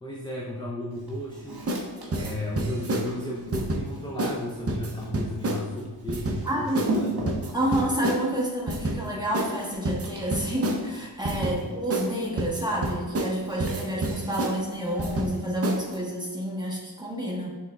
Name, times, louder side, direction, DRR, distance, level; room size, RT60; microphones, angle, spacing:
voice 1, 0.0-1.6 2.1-7.4 11.3-11.6, left 1 dB, 10° left, -3 dB, 0.5 m, -34 dB
Walk footsteps, 0.9-16.0, right 2 dB, 65° right, 1.4 m, -40 dB
sound 1, 1.7-1.9 2.1-3.1 3.5-3.8 4.2-4.4 4.7-5.6 6.1-6.4 6.8-7.0 7.3-8.2 8.7-9.0 9.3-9.5 9.9-10.8 11.2-11.6 11.9-12.1 12.4-13.4 13.6-14.5 15.0-15.3 15.6-15.9, right 1 dB, 35° right, 0.6 m, -28 dB
voice 2, 6.4-6.9 7.5-17.5, right 1 dB, 10° right, -3 dB, 1.1 m, -29 dB
6.3 x 3.5 x 2.2 m, 1.3 s
wide cardioid pair, 75°, 41 cm